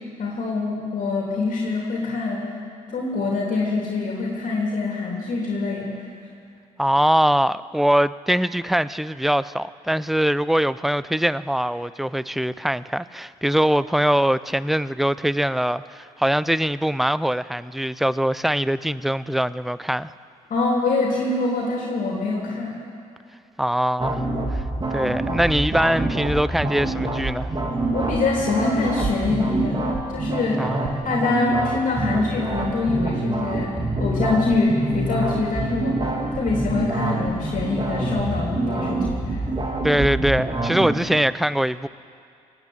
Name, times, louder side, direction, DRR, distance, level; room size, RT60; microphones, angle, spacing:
voice 1, 0.2-2.4 2.9-5.9 20.5-22.8 27.9-29.8 30.1-30.6 31.0-33.7 34.0-35.9 36.3-39.4, left 3 dB, 65° left, 3.2 m, -24 dB
voice 2, 6.8-20.1 23.6-24.2 24.9-27.5 30.6-31.0 39.8-41.9, equal, ahead, 0.5 m, -22 dB
sound 1, 24.0-41.0, right 2 dB, 30° right, 2.8 m, -26 dB
18.5 x 8.9 x 8.6 m
supercardioid pair, 60°, 15 cm